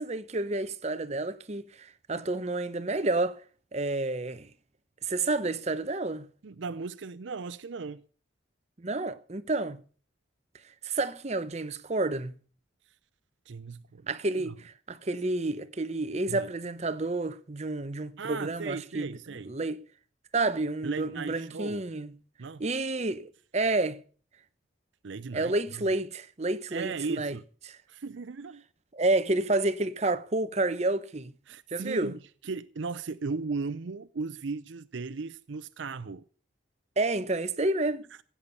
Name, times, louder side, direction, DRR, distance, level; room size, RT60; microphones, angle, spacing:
voice 1, 0.0-3.4 3.7-4.5 5.0-6.3 8.8-9.8 10.8-12.3 14.1-19.1 19.5-19.8 20.3-22.1 22.6-24.0 25.3-27.3 27.7-27.8 28.9-31.3 31.7-32.1 37.0-38.1, right 2 dB, 35° right, 0.7 m, -30 dB
voice 2, 6.4-8.0 13.5-14.5 16.3-16.5 18.2-19.5 20.8-21.8 22.4-22.6 25.0-25.9 26.7-27.4 27.9-28.6 31.5-36.2, right 4 dB, 75° right, 0.6 m, -37 dB
16.0 x 8.6 x 6.7 m
head